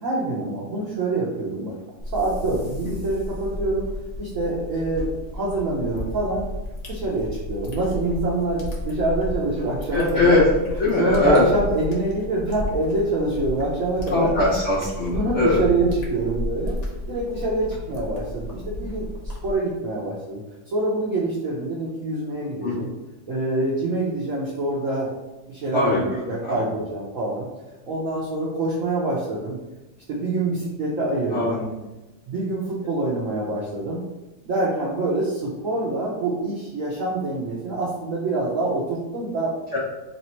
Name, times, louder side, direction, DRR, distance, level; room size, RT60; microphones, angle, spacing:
voice 1, 0.0-1.8 2.1-3.9 4.2-6.5 6.9-10.4 11.0-14.3 15.1-16.8 17.1-20.4 20.7-22.9 23.3-25.1 25.5-27.5 27.9-29.6 30.1-31.6 32.3-34.0 34.5-39.5, right 2 dB, 65° right, -5 dB, 0.8 m, -25 dB
sound 1, 2.0-19.5, left 1 dB, 90° left, 0.3 m, -33 dB
voice 2, 9.9-10.4 10.8-11.4 14.1-15.6 22.6-22.8 25.7-26.6 31.3-31.7 39.7-39.8, left 2 dB, 65° left, -6 dB, 0.7 m, -21 dB
3.3 x 2.9 x 4.2 m, 1.1 s
omnidirectional pair, 2.1 m